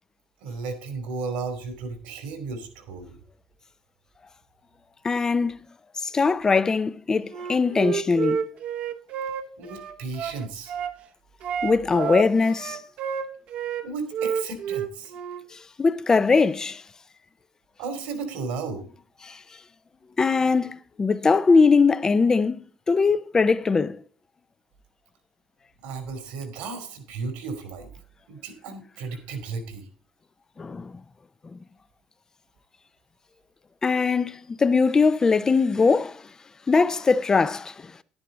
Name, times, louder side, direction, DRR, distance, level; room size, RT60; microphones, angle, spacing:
voice 1, 0.4-3.2 9.6-10.7 13.8-15.1 17.8-18.8 25.8-27.9 28.3-29.9, right 4 dB, 80° right, 2.8 m, -34 dB
voice 2, 5.0-5.6 6.0-8.4 11.6-12.8 15.8-16.8 19.2-19.4 20.2-24.0 30.6-30.9 33.8-36.2 36.7-37.7, left 4 dB, 25° left, 0.6 m, -21 dB
Wind instrument woodwind instrument, 7.3-10.9 11.4-13.9 14.1-15.4, right 8 dB, 65° right, 1.1 m, -30 dB
10.5 x 9.8 x 3.8 m
supercardioid pair, 85°, 2 cm